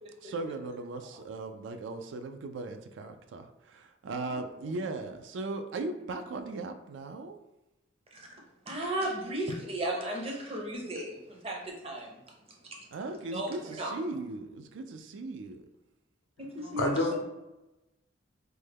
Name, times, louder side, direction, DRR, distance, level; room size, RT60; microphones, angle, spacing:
voice 1, 0.2-7.4 12.9-15.7, right 3 dB, 70° right, 7 dB, 0.3 m, -38 dB
voice 2, 8.7-12.2 12.7-12.8 13.3-13.9 16.4-17.2, right 1 dB, 30° right, -1 dB, 0.6 m, -35 dB
voice 3, 16.6-17.2, left 2 dB, 85° left, 3 dB, 0.6 m, -29 dB
3.3 x 2.1 x 3.3 m, 0.96 s
head